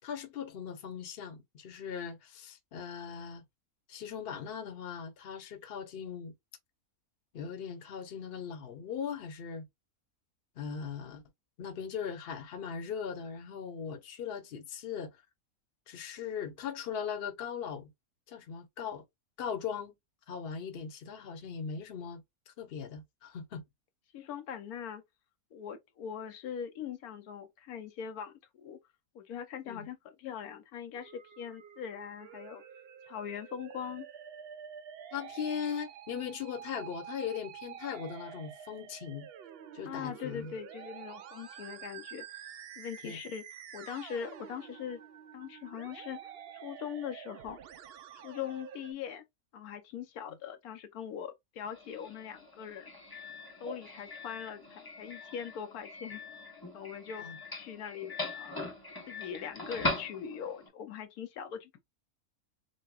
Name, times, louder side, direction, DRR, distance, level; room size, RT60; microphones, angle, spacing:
voice 1, 0.0-3.4 3.9-6.3 7.3-9.6 10.6-11.2 11.6-15.2 15.9-17.9 18.3-19.0 19.4-19.9 20.3-23.6 29.7-29.9 35.1-39.3 39.7-40.6 43.0-43.2 57.2-57.4, left 7 dB, 45° left, 1.0 m, -39 dB
voice 2, 24.1-25.0 25.5-28.8 29.1-32.6 33.0-34.1 39.8-43.4 43.7-45.0 45.3-46.3 46.6-47.6 48.1-49.2 49.5-52.9 53.6-56.2 56.7-57.2 57.5-58.7 59.1-61.8, left 8 dB, 80° left, 1.2 m, -41 dB
Musical instrument, 31.0-48.9, right 9 dB, 75° right, 0.5 m, -48 dB
Doorbell, 51.6-60.7, left 2 dB, 15° left, 0.9 m, -41 dB
6.4 x 2.2 x 2.3 m
omnidirectional pair, 1.6 m